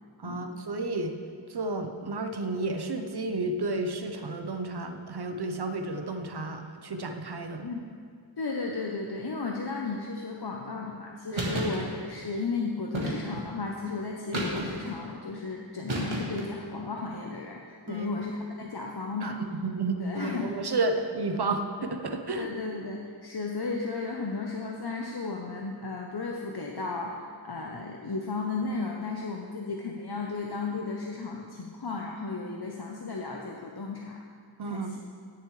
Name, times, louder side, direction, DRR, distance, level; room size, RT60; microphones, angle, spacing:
voice 1, 0.2-1.2 1.5-7.7 11.3-11.6 17.9-18.1 19.2-22.5 34.6-34.9, right 2 dB, 55° right, 6 dB, 0.9 m, -32 dB
voice 2, 8.4-19.4 20.0-20.7 22.3-34.2 34.6-34.8, left 4 dB, 55° left, 0 dB, 0.8 m, -34 dB
sound 1, 11.4-11.8 12.9-13.5 14.3-14.9 15.9-16.5, right 1 dB, 85° right, 1.8 m, -31 dB
17.0 x 6.9 x 3.2 m, 2.1 s
wide cardioid pair, 45°, 47 cm